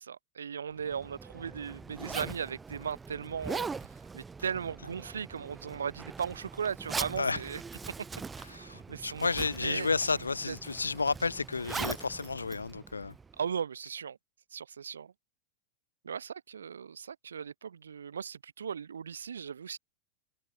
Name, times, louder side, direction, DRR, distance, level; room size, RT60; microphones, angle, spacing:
voice 1, 0.0-3.7 4.1-7.6 8.5-9.3 9.6-10.6 13.4-14.2 14.5-15.1 16.0-19.8, right 7 dB, 70° right, 1.1 m, -37 dB
Zipper (clothing), 0.8-13.4, right 4 dB, 15° right, 2.2 m, -42 dB
voice 2, 8.5-13.1, left 4 dB, 80° left, 1.0 m, -31 dB
figure-of-eight pair, 90°, 0 cm